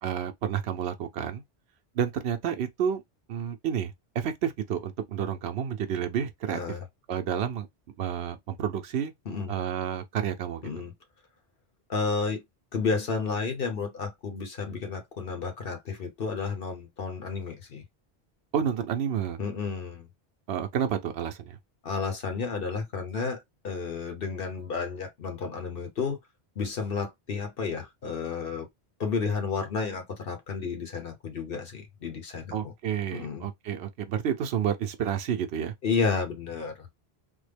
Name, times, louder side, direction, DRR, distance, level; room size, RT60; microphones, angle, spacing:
voice 1, 0.0-1.4 1.9-3.0 3.3-6.6 7.1-7.7 8.0-9.1 9.5-10.7 18.5-19.4 20.5-21.6 32.5-35.7, right 8 dB, 80° right, 0.9 m, -30 dB
voice 2, 6.5-6.8 9.3-9.5 10.6-10.9 11.9-12.4 12.7-17.8 19.4-20.1 21.8-26.2 26.6-28.7 29.0-32.7 33.1-33.5 35.8-36.9, left 5 dB, 60° left, 1.0 m, -31 dB
3.5 x 2.1 x 3.3 m
omnidirectional pair, 1.1 m